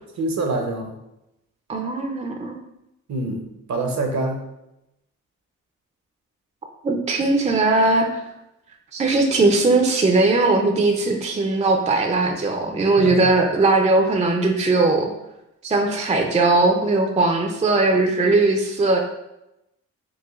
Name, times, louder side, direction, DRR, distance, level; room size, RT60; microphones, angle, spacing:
voice 1, 0.2-0.9 3.1-4.4 13.0-13.3, right 2 dB, 55° right, 3 dB, 0.8 m, -26 dB
voice 2, 1.7-2.6 6.8-8.2 8.9-15.1 15.6-19.0, right 3 dB, 20° right, 3 dB, 0.5 m, -19 dB
4.8 x 2.1 x 2.4 m, 0.87 s
cardioid pair, 60°, 34 cm